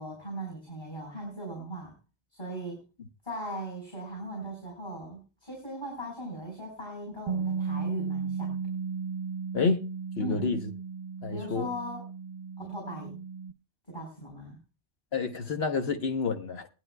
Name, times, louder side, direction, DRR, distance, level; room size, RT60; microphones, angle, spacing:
voice 1, 0.0-1.9 2.3-2.8 3.2-8.6 10.2-10.5 11.3-12.1 12.6-13.2 13.9-14.6, right 1 dB, 25° left, 4.2 m, -39 dB
Bass guitar, 7.3-13.5, right 5 dB, 50° right, 0.8 m, -35 dB
voice 2, 9.5-9.9 10.2-10.6 11.2-11.7 15.1-16.7, left 5 dB, 65° left, 1.2 m, -29 dB
19.0 x 12.0 x 2.2 m
omnidirectional pair, 1.2 m